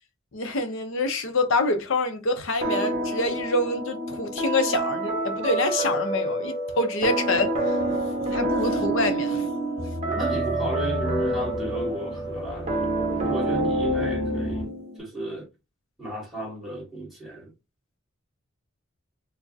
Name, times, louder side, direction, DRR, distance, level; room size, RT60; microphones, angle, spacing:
voice 1, 0.3-7.8 8.3-9.5, left 2 dB, 65° left, 0.6 m, -26 dB
sound 1, 2.6-15.0, right 1 dB, 35° right, 1.0 m, -28 dB
sound 2, 7.8-14.7, right 2 dB, 25° left, 0.7 m, -32 dB
voice 2, 10.0-15.5 16.0-17.5, right 1 dB, ahead, 1.5 m, -34 dB
4.6 x 2.1 x 2.6 m
head